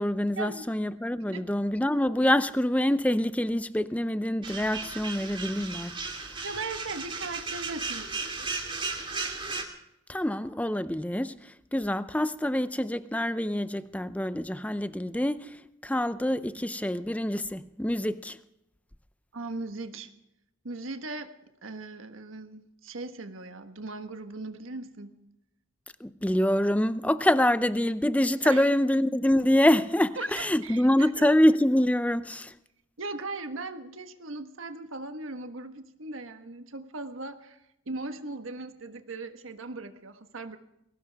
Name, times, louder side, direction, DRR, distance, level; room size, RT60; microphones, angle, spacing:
voice 1, 0.0-5.9 10.1-15.6 15.8-18.4 26.0-32.5, left 1 dB, 5° left, 0.6 m, -25 dB
sound 1, 4.4-9.6, right 4 dB, 25° right, 2.3 m, -35 dB
voice 2, 6.4-8.5 19.3-20.1 20.6-21.3 21.6-25.2 28.4-28.7 30.2-31.1 33.0-37.6 37.9-40.6, right 3 dB, 90° right, 1.4 m, -38 dB
21.5 x 18.0 x 3.5 m
head